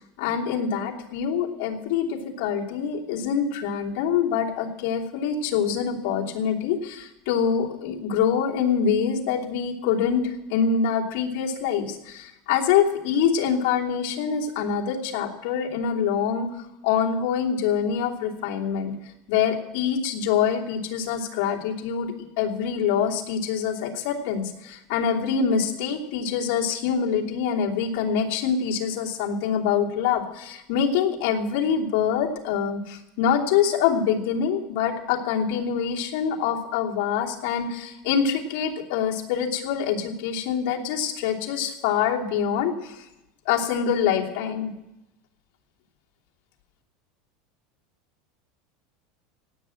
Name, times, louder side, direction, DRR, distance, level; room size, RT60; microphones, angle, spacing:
voice 1, 0.2-16.5 16.8-18.9 19.3-43.1 43.4-44.7, left 7 dB, 60° left, -2 dB, 2.9 m, -25 dB
17.5 x 9.0 x 7.8 m, 0.93 s
supercardioid pair, 150°, 0 cm